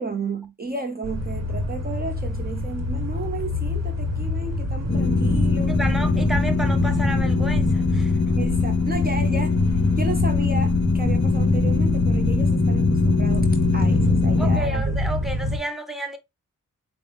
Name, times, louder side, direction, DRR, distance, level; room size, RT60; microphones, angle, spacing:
voice 1, 0.0-5.7 8.4-13.5 13.7-15.0, right 3 dB, 30° right, 0.7 m, -33 dB
sound 1, 1.0-15.6, equal, 55° right, 1.1 m, -26 dB
sound 2, 4.9-14.6, left 4 dB, 40° left, 0.6 m, -22 dB
voice 2, 5.7-8.4 14.4-16.2, right 1 dB, ahead, 0.9 m, -31 dB
5.2 x 2.0 x 3.3 m
cardioid pair, 45°, 32 cm